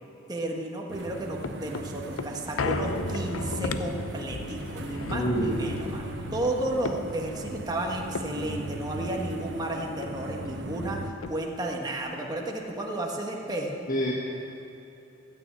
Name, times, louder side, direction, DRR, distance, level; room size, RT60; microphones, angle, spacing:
voice 1, 0.3-13.8, right 1 dB, 20° right, 0 dB, 1.3 m, -32 dB
sound 1, 0.9-9.7 10.0-10.1 10.4-11.8 12.2-12.3, left 3 dB, 80° left, 0.7 m, -37 dB
sound 2, 0.9-11.1, right 2 dB, 55° right, 0.9 m, -38 dB
voice 2, 5.1-5.8 13.9-14.1, equal, 40° left, -4 dB, 1.4 m, -27 dB
13.5 x 9.0 x 8.4 m, 3.0 s
head